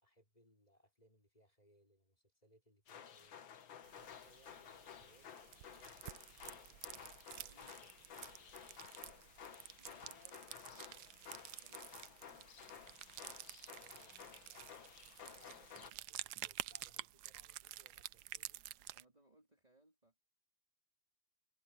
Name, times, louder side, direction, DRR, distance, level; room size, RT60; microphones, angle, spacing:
voice 1, 0.0-3.4 3.9-6.2 6.5-8.6 10.0-10.5 13.7-14.9 15.3-18.7, equal, 20° left, 5.1 m, -70 dB
sound 1, 2.9-15.9, left 8 dB, 70° left, 2.1 m, -55 dB
sound 2, 3.8-19.0, right 14 dB, 75° right, 0.9 m, -51 dB
voice 2, 9.8-11.1 11.6-12.7 15.5-16.0 18.8-20.2, right 1 dB, 20° right, 3.9 m, -70 dB
omnidirectional pair, 2.2 m